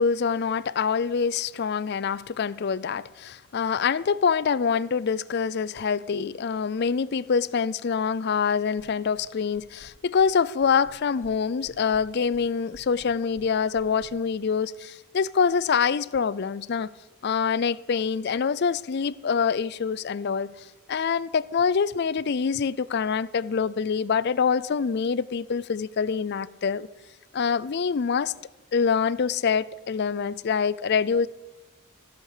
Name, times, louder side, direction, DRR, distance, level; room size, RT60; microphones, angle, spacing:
voice 1, 0.0-16.9 17.2-26.9 27.3-28.3 28.7-31.3, left 6 dB, 50° left, 0.4 m, -25 dB
sound 1, 8.8-9.3 9.5-10.3 10.6-11.4 11.6-14.1, equal, 35° left, 2.4 m, -52 dB
14.5 x 12.0 x 6.6 m
head